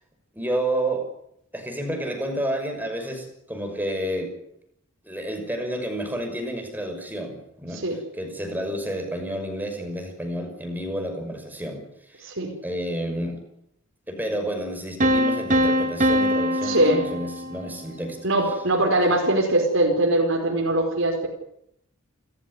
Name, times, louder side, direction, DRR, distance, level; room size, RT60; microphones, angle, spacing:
voice 1, 0.3-1.1 1.5-4.3 5.0-7.8 8.2-11.8 12.1-12.3 12.6-13.4 14.1-18.2 19.0-19.1, right 1 dB, 10° right, 5 dB, 6.0 m, -30 dB
voice 2, 12.2-12.5 16.6-17.0 18.2-21.3, right 1 dB, 60° right, 1 dB, 4.8 m, -21 dB
sound 1, 15.0-17.9, equal, 35° right, 1.6 m, -23 dB
30.0 x 14.5 x 9.9 m, 0.76 s
head